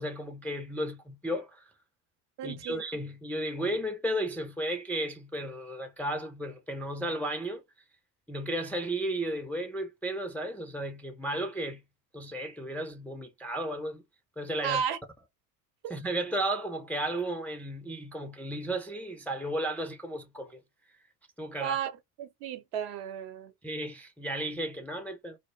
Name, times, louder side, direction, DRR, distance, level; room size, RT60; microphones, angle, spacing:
voice 1, 0.0-1.6 2.4-7.6 8.3-11.8 12.1-14.0 14.4-14.8 15.9-20.6 21.4-21.8 23.6-25.4, right 1 dB, 5° left, 0.3 m, -34 dB
voice 2, 2.4-2.8 14.6-15.0 15.8-16.0 21.6-21.9 22.2-23.5, right 8 dB, 65° right, 0.9 m, -33 dB
2.1 x 2.0 x 3.0 m
hypercardioid pair, 80°, 44 cm